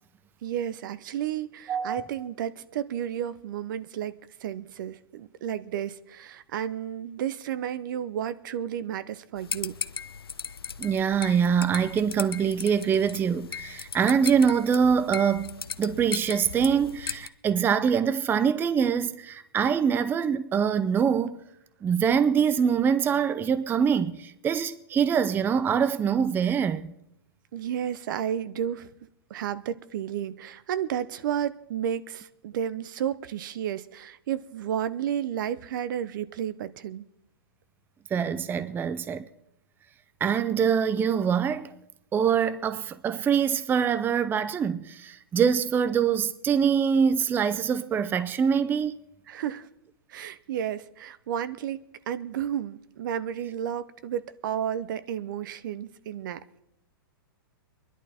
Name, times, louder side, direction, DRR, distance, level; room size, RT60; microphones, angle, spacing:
voice 1, 0.4-4.1 4.4-9.7 27.5-28.9 29.3-37.0 49.3-49.7 50.1-56.6, right 9 dB, 60° right, 0.8 m, -32 dB
voice 2, 1.7-2.1 10.8-21.4 21.8-26.9 38.1-39.3 40.2-41.7 42.1-48.9, right 7 dB, 15° right, 0.5 m, -24 dB
sound 1, 9.4-17.3, left 7 dB, 85° left, 0.7 m, -37 dB
23.5 x 11.0 x 4.4 m
hypercardioid pair, 120°, 12 cm